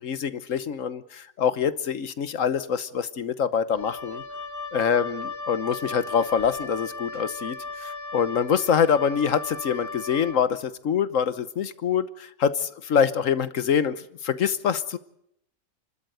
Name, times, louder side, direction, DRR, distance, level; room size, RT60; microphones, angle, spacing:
voice 1, 0.0-4.2 4.7-7.6 8.1-15.0, left 7 dB, 55° left, 14 dB, 1.2 m, -25 dB
Wind instrument woodwind instrument, 3.8-10.5, left 3 dB, 35° left, 1.7 m, -36 dB
30.0 x 12.5 x 8.0 m, 0.74 s
omnidirectional pair, 1.8 m